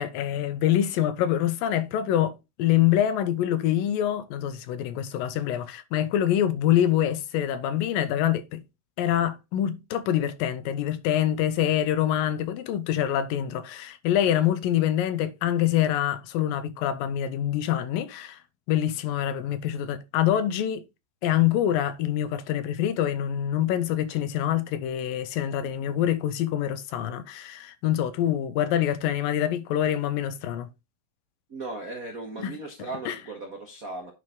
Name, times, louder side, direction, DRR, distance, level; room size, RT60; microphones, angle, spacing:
voice 1, 0.0-8.6 9.0-18.4 18.7-20.8 21.2-30.7 32.4-32.5 33.1-33.2, left 11 dB, 85° left, 2.5 m, -25 dB
voice 2, 31.5-34.1, right 2 dB, 80° right, 0.7 m, -37 dB
9.5 x 4.5 x 3.7 m
omnidirectional pair, 4.0 m